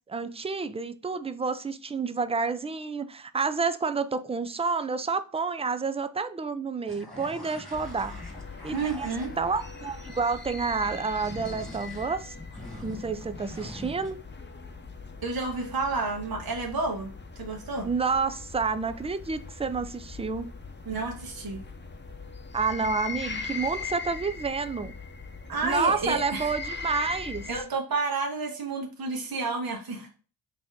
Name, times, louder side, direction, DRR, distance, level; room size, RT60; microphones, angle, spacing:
voice 1, 0.1-8.2 8.6-9.1 9.4-12.4 12.8-14.2 17.8-20.5 22.5-24.9 25.6-27.5, right 4 dB, 15° right, 0.4 m, -29 dB
sound 1, 6.9-9.5 11.1-14.1, equal, ahead, 1.9 m, -44 dB
sound 2, 7.7-27.6, left 4 dB, 25° left, 0.8 m, -40 dB
voice 2, 8.7-9.4 15.2-17.1 17.4-17.9 20.9-21.6 25.5-26.5 27.5-30.1, right 3 dB, 50° right, 1.3 m, -30 dB
4.0 x 2.9 x 3.6 m
cardioid pair, 50°, 46 cm